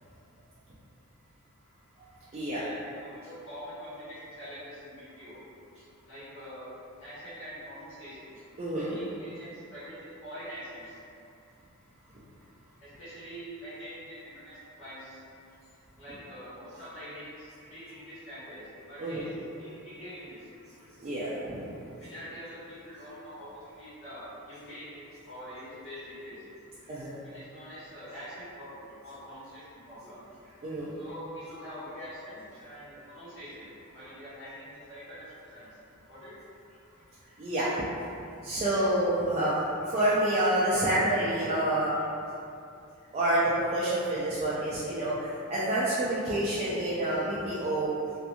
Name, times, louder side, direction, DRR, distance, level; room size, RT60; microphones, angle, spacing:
voice 1, 2.5-5.4 6.0-6.7 7.0-8.4 8.7-11.0 12.8-15.2 16.0-19.3 19.6-20.5 22.0-26.4 27.2-30.2 31.0-33.7 33.9-35.8 36.1-36.3 38.7-38.9, equal, 60° left, -12 dB, 1.2 m, -45 dB
voice 2, 8.6-9.0 19.0-19.2 21.0-21.7 26.9-27.2 30.6-30.9 37.4-37.9 38.4-39.6 39.8-42.0 43.1-48.0, right 1 dB, 30° right, -9 dB, 0.3 m, -28 dB
2.8 x 2.5 x 2.2 m, 2.6 s
head